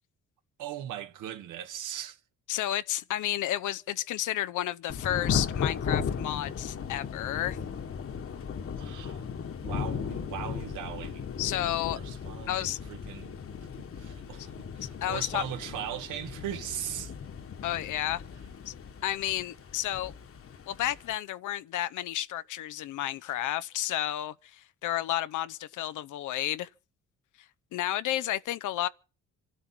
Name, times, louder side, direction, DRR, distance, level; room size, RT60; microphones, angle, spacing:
voice 1, 0.6-2.2 8.8-9.3 9.6-11.3 11.7-13.4 13.8-17.1, right 11 dB, 85° right, 1.9 m, -39 dB
voice 2, 2.5-7.6 11.4-12.0 12.5-12.8 14.8-15.4 17.6-18.2 18.7-18.8 19.0-20.1 20.7-26.7 27.7-28.9, left 13 dB, 80° left, 0.7 m, -31 dB
Thunder / Rain, 4.9-21.2, left 6 dB, 45° left, 1.4 m, -36 dB
25.5 x 12.5 x 4.4 m
cardioid pair, 90°, 30 cm